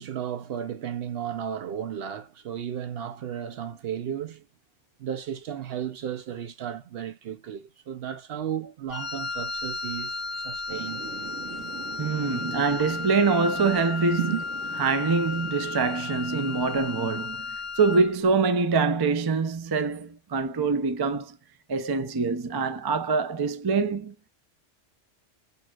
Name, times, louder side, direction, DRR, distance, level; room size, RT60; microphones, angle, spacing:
voice 1, 0.0-4.5 5.0-11.0 12.3-12.4 14.2-14.4, right 9 dB, 60° right, 0.7 m, -34 dB
Wind instrument woodwind instrument, 8.9-18.2, left 4 dB, 40° left, 0.4 m, -34 dB
Thunder / Rain, 10.7-17.1, right 8 dB, 85° right, 1.2 m, -43 dB
voice 2, 12.0-14.3 14.8-21.4 21.7-24.1, right 4 dB, 40° right, 0.3 m, -25 dB
6.2 x 2.8 x 2.3 m
omnidirectional pair, 1.3 m